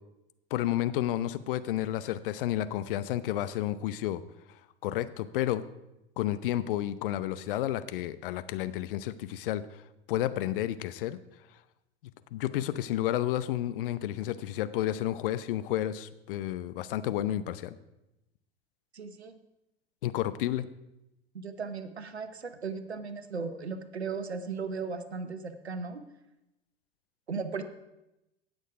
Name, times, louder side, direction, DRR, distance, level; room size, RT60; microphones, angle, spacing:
voice 1, 0.5-4.2 4.8-5.6 6.2-9.6 10.1-11.2 12.3-17.8 20.0-20.7, left 13 dB, 55° left, 14 dB, 0.8 m, -31 dB
voice 2, 18.9-19.4 21.3-26.0 27.3-27.6, right 5 dB, 85° right, 11 dB, 1.0 m, -36 dB
17.5 x 6.5 x 4.8 m, 0.92 s
figure-of-eight pair, 80°, 32 cm